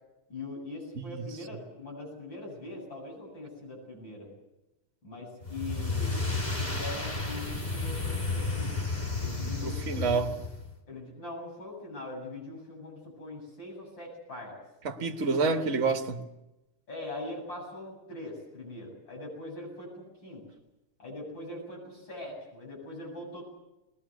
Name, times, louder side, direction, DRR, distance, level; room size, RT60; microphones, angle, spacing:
voice 1, 0.3-4.3 5.0-6.2 6.6-8.8 9.2-10.2 10.9-14.6 15.4-15.6 16.9-20.4 21.0-23.4, left 2 dB, 60° left, 9.0 m, -42 dB
sound 1, 5.4-10.7, left 3 dB, 20° left, 2.4 m, -32 dB
voice 2, 9.6-10.3 14.8-16.2, right 4 dB, 40° right, 1.6 m, -28 dB
21.5 x 20.5 x 8.2 m
omnidirectional pair, 2.4 m